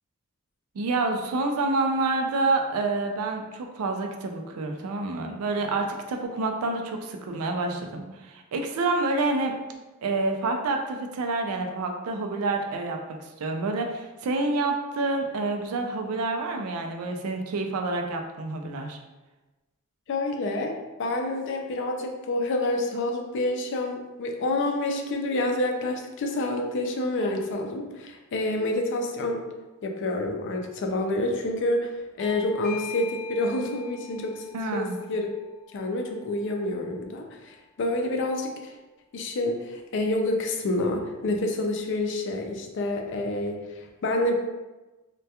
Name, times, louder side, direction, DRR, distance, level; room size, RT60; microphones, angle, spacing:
voice 1, 0.8-9.5 10.0-13.0 13.4-19.0 34.5-35.0, right 3 dB, 80° right, 4 dB, 0.4 m, -28 dB
voice 2, 20.1-20.7 21.0-29.4 29.8-31.9 32.2-34.5 34.7-35.3 35.7-38.7 39.1-44.3, left 2 dB, 55° left, 3 dB, 0.4 m, -28 dB
Bell / Doorbell, 32.2-37.4, left 7 dB, 5° left, 0.5 m, -44 dB
2.2 x 2.2 x 2.7 m, 1.1 s
head